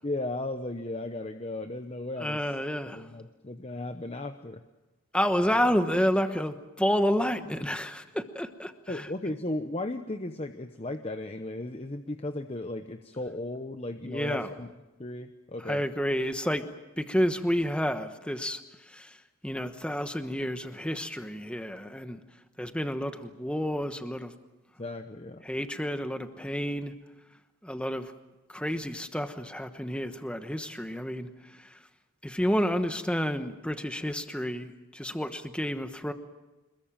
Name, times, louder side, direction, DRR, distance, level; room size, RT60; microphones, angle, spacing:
voice 1, 0.0-2.4 3.0-4.6 8.9-14.7 15.0-15.8 24.8-25.4, left 2 dB, 25° left, 8 dB, 0.8 m, -35 dB
voice 2, 2.2-3.1 5.1-9.1 14.0-14.5 15.6-16.7 17.0-19.2 19.4-22.2 22.6-24.3 25.4-26.9 27.6-28.1 28.5-31.8 32.2-36.1, equal, 5° left, 8 dB, 1.2 m, -30 dB
27.0 x 21.0 x 7.5 m, 1.1 s
head